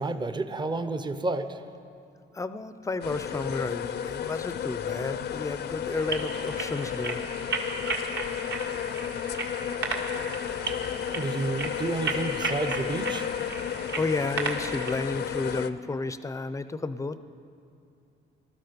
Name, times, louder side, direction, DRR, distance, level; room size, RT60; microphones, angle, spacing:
voice 1, 0.0-1.6 11.1-13.3, right 2 dB, 20° right, 10 dB, 0.8 m, -30 dB
voice 2, 2.3-7.2 14.0-17.2, left 3 dB, 15° left, 13 dB, 0.6 m, -32 dB
sound 1, 3.0-15.7, left 9 dB, 55° left, 0.6 m, -33 dB
sound 2, 5.9-15.0, right 3 dB, 60° right, 1.9 m, -35 dB
19.5 x 12.5 x 5.3 m, 2.6 s
cardioid pair, 90°, 20 cm